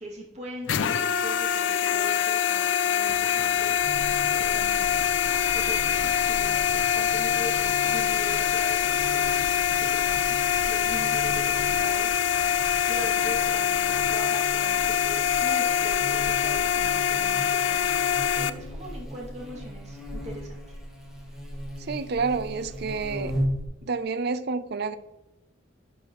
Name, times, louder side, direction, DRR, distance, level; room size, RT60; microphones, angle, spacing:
voice 1, 0.0-5.0 5.5-9.4 9.7-10.4 10.7-20.8, right 1 dB, 35° right, -2 dB, 2.4 m, -41 dB
sound 1, 0.7-18.5, left 9 dB, 70° left, 0.4 m, -24 dB
sound 2, 3.1-15.3 15.8-15.9, right 1 dB, 80° right, 1.2 m, -47 dB
Buzz, 3.8-23.6, equal, 5° right, 1.7 m, -38 dB
voice 2, 21.9-23.3 23.8-25.0, right 4 dB, 55° right, 13 dB, 0.5 m, -29 dB
11.5 x 6.7 x 3.1 m, 0.99 s
head